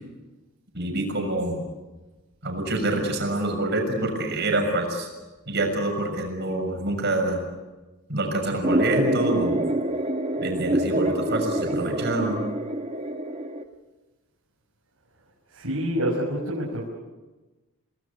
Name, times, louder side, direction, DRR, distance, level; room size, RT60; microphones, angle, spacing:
voice 1, 0.7-1.7 2.4-5.1 5.5-7.4 8.1-9.6 10.4-12.4, right 2 dB, 50° right, 3 dB, 6.6 m, -26 dB
sound 1, 8.6-13.6, right 1 dB, 30° right, 1.6 m, -26 dB
voice 2, 15.5-16.9, equal, 85° right, -3 dB, 5.9 m, -27 dB
29.5 x 20.0 x 8.4 m, 1.2 s
head